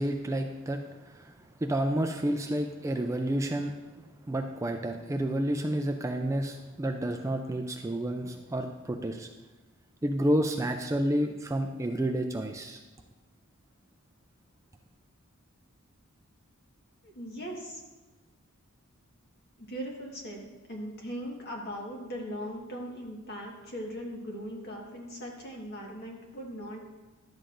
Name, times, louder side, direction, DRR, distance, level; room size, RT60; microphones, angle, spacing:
voice 1, 0.0-1.3 1.6-3.7 4.3-9.3 10.0-12.8, right 1 dB, 15° right, 4 dB, 0.3 m, -30 dB
voice 2, 17.0-17.8 19.6-26.9, equal, 50° left, -1 dB, 1.5 m, -39 dB
11.0 x 7.6 x 2.6 m, 1.2 s
head